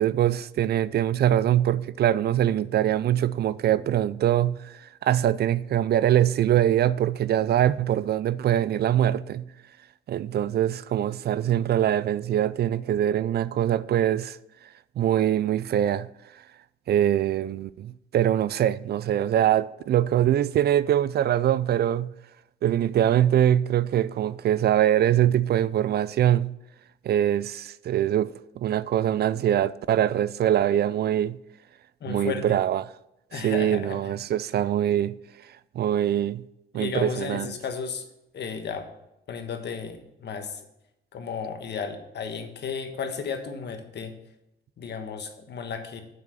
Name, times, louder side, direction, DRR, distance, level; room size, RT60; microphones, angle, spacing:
voice 1, 0.0-9.5 10.1-14.4 15.0-16.1 16.9-22.1 22.6-26.5 27.0-31.4 32.1-32.9 33.3-35.1 35.7-36.4 36.7-37.5, right 11 dB, 55° right, 0.4 m, -23 dB
voice 2, 32.0-32.4 33.3-34.1 36.7-38.1 38.3-38.9 39.3-40.6 41.1-44.1 44.8-46.0, left 6 dB, 60° left, 1.4 m, -33 dB
7.6 x 6.0 x 7.4 m
cardioid pair, 90°, 20 cm